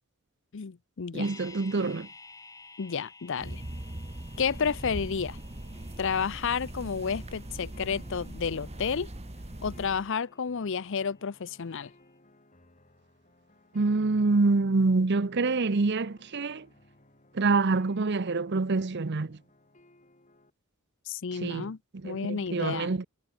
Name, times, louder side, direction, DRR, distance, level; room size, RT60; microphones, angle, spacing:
voice 1, 0.5-1.3 2.8-3.6 4.4-5.4 6.0-9.1 9.6-11.9 21.1-21.8 22.0-22.9, left 6 dB, 55° left, 0.6 m, -31 dB
voice 2, 1.1-2.1 13.7-16.7 17.3-19.4 21.3-23.0, right 3 dB, 50° right, 0.7 m, -26 dB
sound 1, 1.2-11.3 11.6-11.7, left 4 dB, 15° left, 3.1 m, -54 dB
sound 2, 3.4-10.1, right 1 dB, 30° right, 1.4 m, -41 dB
sound 3, 4.5-20.5, left 1 dB, 35° left, 7.0 m, -60 dB
head